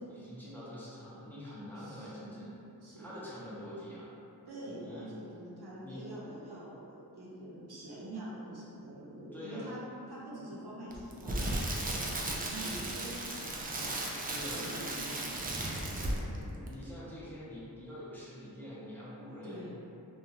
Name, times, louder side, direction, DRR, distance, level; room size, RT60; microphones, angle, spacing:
voice 1, 0.1-2.5 3.0-4.1 4.7-5.1 5.8-6.0 9.3-9.8 14.2-14.8 15.8-19.7, left 1 dB, 5° left, -9 dB, 0.7 m, -45 dB
voice 2, 1.8-2.5 2.8-3.3 4.5-9.8 10.1-14.2 14.5-15.4 19.4-19.7, right 1 dB, 80° right, -7 dB, 0.7 m, -45 dB
Crackle, 10.9-16.4 16.7-16.8, right 1 dB, 25° right, 0.3 m, -35 dB
2.5 x 2.1 x 2.8 m, 2.7 s
cardioid pair, 45°, 39 cm